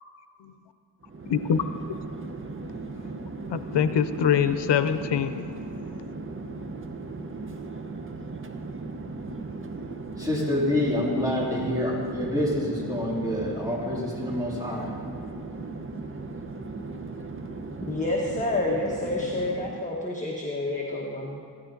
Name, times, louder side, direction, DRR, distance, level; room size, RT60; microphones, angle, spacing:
Chatter / Fixed-wing aircraft airplane, 1.0-19.9, right 3 dB, 30° right, 0.9 m, -37 dB
voice 1, 3.5-5.5, left 8 dB, 85° left, 11 dB, 0.7 m, -23 dB
voice 2, 10.2-14.9, left 1 dB, 10° right, -6 dB, 3.8 m, -27 dB
voice 3, 17.8-21.4, left 2 dB, 20° left, -2 dB, 1.3 m, -29 dB
16.0 x 12.0 x 3.9 m, 2.3 s
wide cardioid pair, 100°, 41 cm